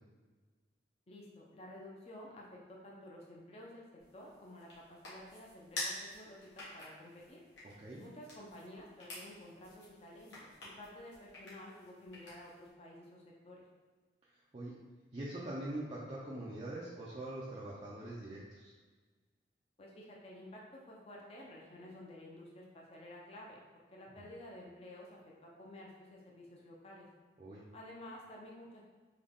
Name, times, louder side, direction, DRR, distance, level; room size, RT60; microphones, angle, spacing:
voice 1, 1.1-3.8 4.1-7.4 8.0-13.6 19.8-23.6 23.9-27.1 27.7-28.8, left 1 dB, 35° left, -3 dB, 0.5 m, -52 dB
sound 1, 4.0-12.7, left 1 dB, 75° left, 1.2 m, -49 dB
voice 2, 15.1-18.7 24.2-24.3 27.4-27.6, right 1 dB, 30° right, -7 dB, 0.4 m, -43 dB
3.8 x 2.2 x 3.5 m, 1.4 s
head